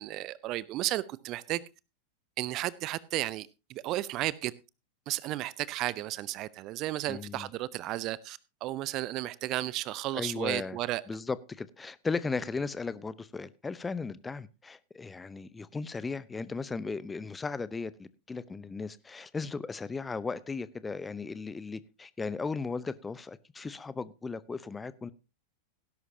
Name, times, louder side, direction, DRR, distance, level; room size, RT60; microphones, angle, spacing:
voice 1, 0.0-1.6 2.4-4.5 5.1-11.0, right 16 dB, 40° right, 21 dB, 0.6 m, -33 dB
voice 2, 7.1-7.5 10.1-10.8 11.1-25.1, left 4 dB, 15° left, 17 dB, 0.8 m, -36 dB
17.5 x 11.0 x 2.8 m, 0.27 s
figure-of-eight pair, 90°, 0 cm